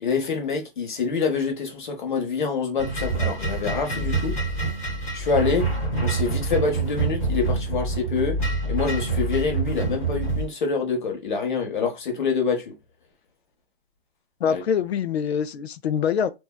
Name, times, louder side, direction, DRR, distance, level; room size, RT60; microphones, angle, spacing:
voice 1, 0.0-4.3 5.1-5.7 6.0-8.4 8.7-12.7 14.5-14.6, left 5 dB, 50° left, 1.0 m, -26 dB
sound 1, 2.8-10.5, right 3 dB, 15° left, 0.7 m, -26 dB
voice 2, 14.4-16.3, left 7 dB, 85° left, 0.5 m, -24 dB
2.6 x 2.3 x 2.3 m
hypercardioid pair, 170°, 31 cm